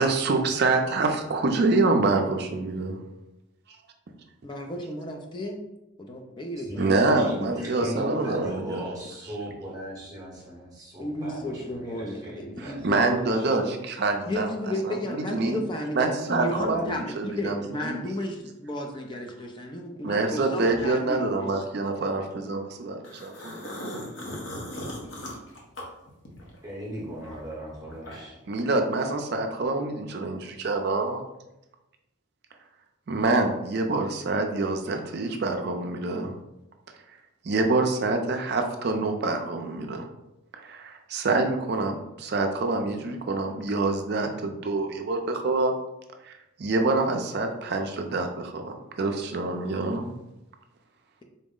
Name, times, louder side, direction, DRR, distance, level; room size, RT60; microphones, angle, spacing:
voice 1, 0.0-3.0 6.8-8.8 12.6-14.5 14.9-15.6 15.9-18.0 20.0-24.0 28.5-31.2 33.1-36.3 37.4-40.0 40.5-45.7 46.2-46.3 46.6-50.1, right 3 dB, 50° right, 4 dB, 0.4 m, -26 dB
voice 2, 4.4-5.6 6.0-7.9 11.0-13.7 14.2-21.5, left 1 dB, 20° left, 3 dB, 0.3 m, -33 dB
voice 3, 6.6-13.6 16.6-16.9 20.3-20.8 26.6-28.4, right 1 dB, 15° right, -6 dB, 0.8 m, -38 dB
sound 1, 23.0-26.6 27.0-28.5, left 1 dB, 60° left, 0.8 m, -38 dB
4.0 x 2.0 x 3.6 m, 0.92 s
head